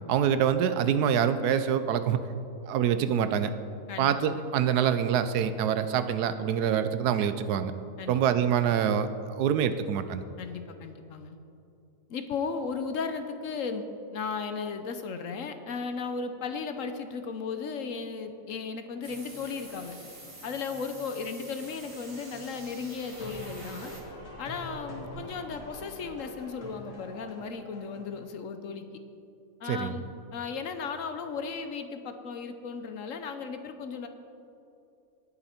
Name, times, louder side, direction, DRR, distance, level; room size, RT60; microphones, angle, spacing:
voice 1, 0.1-2.2 2.7-3.5 4.0-7.7 8.1-10.2 29.6-29.9, right 8 dB, 90° right, 11 dB, 1.2 m, -25 dB
voice 2, 3.9-4.5 8.0-8.6 10.4-11.4 12.1-13.9 14.1-20.0 20.4-23.9 24.4-28.9 29.6-30.0 30.3-34.1, left 5 dB, 60° left, 8 dB, 1.1 m, -35 dB
sound 1, 19.0-24.0, right 1 dB, 20° right, 1.6 m, -47 dB
sound 2, 23.1-28.2, equal, 90° left, 2.6 m, -44 dB
19.0 x 6.9 x 4.3 m, 2.7 s
omnidirectional pair, 1.6 m